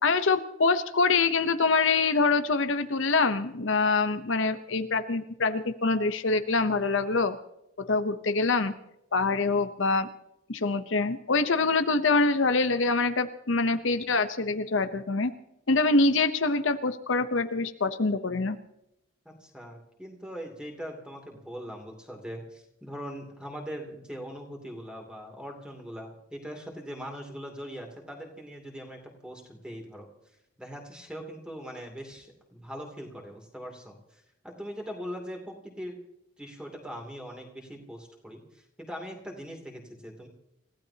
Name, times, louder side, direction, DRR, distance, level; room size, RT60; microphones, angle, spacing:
voice 1, 0.0-7.4 7.9-8.7 9.1-10.1 10.5-15.3 15.7-18.6, left 3 dB, 70° left, 9 dB, 0.9 m, -25 dB
voice 2, 19.2-30.1 30.6-36.0 36.4-40.3, equal, 5° right, 1 dB, 2.8 m, -41 dB
29.0 x 15.5 x 2.9 m, 0.83 s
head